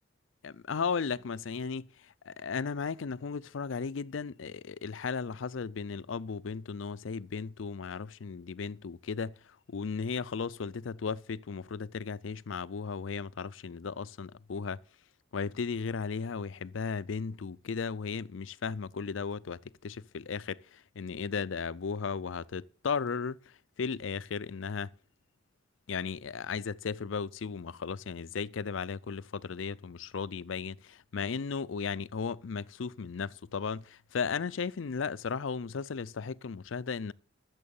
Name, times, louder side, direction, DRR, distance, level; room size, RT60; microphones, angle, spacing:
voice 1, 0.4-1.9 2.2-9.3 9.7-14.8 15.3-23.4 23.8-24.9 25.9-37.1, left 5 dB, 90° left, 0.5 m, -35 dB
12.5 x 7.4 x 7.0 m
head